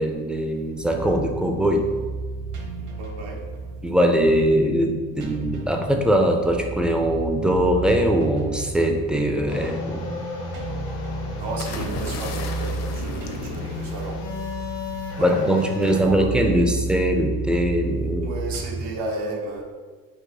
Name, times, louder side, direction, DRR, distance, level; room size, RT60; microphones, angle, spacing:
voice 1, 0.0-1.9 3.8-10.1 15.2-18.3, equal, 5° right, 3 dB, 0.4 m, -21 dB
sound 1, 0.8-18.8, right 3 dB, 55° right, 0.9 m, -32 dB
voice 2, 2.8-3.4 11.4-14.7 15.2-16.5 18.2-19.6, right 2 dB, 85° right, 0 dB, 0.9 m, -33 dB
sound 2, 9.5-16.0, left 4 dB, 85° left, 1.0 m, -33 dB
sound 3, 11.6-14.3 15.6-15.9, left 5 dB, 45° left, 0.6 m, -37 dB
4.7 x 2.5 x 3.9 m, 1.4 s
cardioid pair, 100°, 35 cm